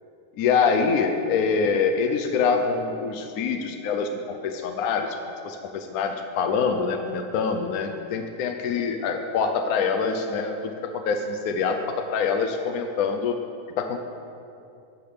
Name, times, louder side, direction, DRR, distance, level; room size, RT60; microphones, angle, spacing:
voice 1, 0.4-5.2 5.4-13.3 13.8-14.0, left 5 dB, 75° left, 5 dB, 1.1 m, -25 dB
12.0 x 5.1 x 7.0 m, 2.6 s
omnidirectional pair, 1.6 m